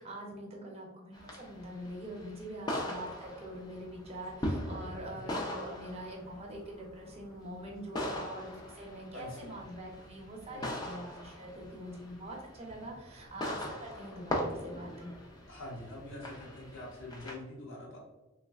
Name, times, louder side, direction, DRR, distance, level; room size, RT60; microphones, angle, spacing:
voice 1, 0.0-15.1, right 1 dB, 30° right, -1 dB, 0.6 m, -44 dB
sound 1, 1.1-17.3, left 1 dB, 20° left, 0.4 m, -41 dB
voice 2, 9.1-9.5 10.5-10.8 15.5-18.0, left 1 dB, 60° left, -3 dB, 1.0 m, -45 dB
3.2 x 3.1 x 2.3 m, 1.1 s
head